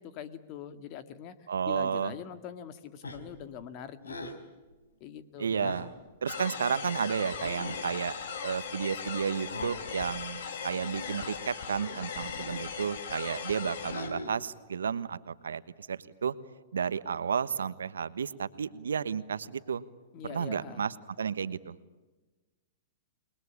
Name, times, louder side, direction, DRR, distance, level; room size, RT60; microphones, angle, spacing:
voice 1, 0.0-1.3 1.7-4.3 5.0-5.5 20.1-20.8, left 9 dB, 40° left, 10 dB, 2.2 m, -43 dB
voice 2, 1.5-2.1 5.4-5.9 6.2-8.1 8.4-15.6 15.9-16.3 16.7-19.8 20.3-21.7, right 7 dB, 85° right, 14 dB, 1.2 m, -32 dB
sound 1, 3.0-3.4 4.0-4.4 5.5-6.0 7.4-7.9 9.3-9.8 10.7-11.2 12.2-12.7 13.8-14.5, left 2 dB, 90° left, 4.0 m, -41 dB
sound 2, 6.3-14.1, left 6 dB, 65° left, 4.0 m, -38 dB
28.5 x 21.5 x 8.6 m, 1.2 s
hypercardioid pair, 120°, 0 cm